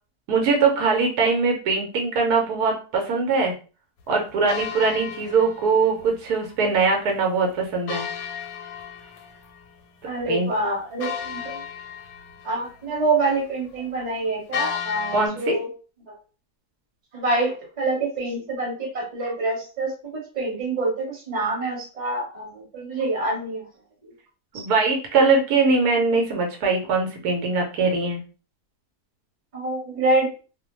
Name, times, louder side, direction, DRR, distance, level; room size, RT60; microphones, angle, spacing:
voice 1, 0.3-3.5 4.1-8.0 10.3-10.5 15.1-15.6 24.5-28.2, right 4 dB, 80° right, 2 dB, 1.1 m, -21 dB
sound 1, 4.5-6.2 6.5-6.6 6.8-6.9 7.9-9.8 10.2-10.3 11.0-12.8 14.5-15.3, left 8 dB, 85° left, 1.1 m, -33 dB
voice 2, 10.0-11.6 12.4-15.7 16.1-16.2 17.1-23.7 24.0-24.1 24.5-24.7 29.5-30.3, right 2 dB, 30° right, -2 dB, 1.1 m, -26 dB
2.6 x 2.1 x 2.9 m, 0.35 s
omnidirectional pair, 1.7 m